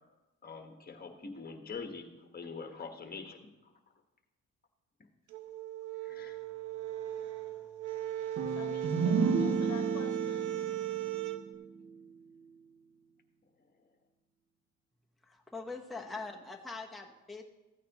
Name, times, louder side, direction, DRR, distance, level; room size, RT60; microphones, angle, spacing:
voice 1, 0.4-2.1 2.3-3.7 6.0-6.4, left 4 dB, 30° left, 5 dB, 1.4 m, -44 dB
sound 1, 5.3-11.4, right 12 dB, 85° right, 0.9 m, -37 dB
sound 2, 8.4-12.0, right 4 dB, 55° right, 1.0 m, -32 dB
voice 2, 8.5-10.6, left 7 dB, 60° left, 7 dB, 1.0 m, -47 dB
voice 3, 15.2-17.4, left 3 dB, ahead, 0 dB, 0.9 m, -43 dB
14.5 x 9.1 x 3.0 m, 1.1 s
cardioid pair, 90°, 30 cm